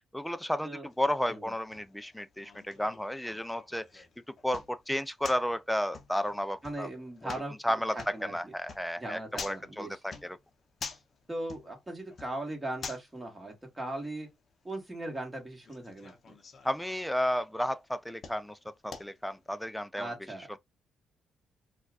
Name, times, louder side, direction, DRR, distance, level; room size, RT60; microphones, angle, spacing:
voice 1, 0.1-4.1 4.4-6.9 7.2-7.3 7.6-10.4 16.6-18.6 18.8-20.1 20.5-20.6, equal, 5° left, 0.4 m, -32 dB
sound 1, 0.9-19.5, left 5 dB, 45° left, 0.7 m, -49 dB
voice 2, 6.6-7.8 8.1-8.5 9.0-10.0 11.3-14.3 14.6-16.1 20.0-20.5, right 1 dB, 10° right, 1.6 m, -39 dB
4.3 x 2.3 x 2.3 m
cardioid pair, 90°, 0 cm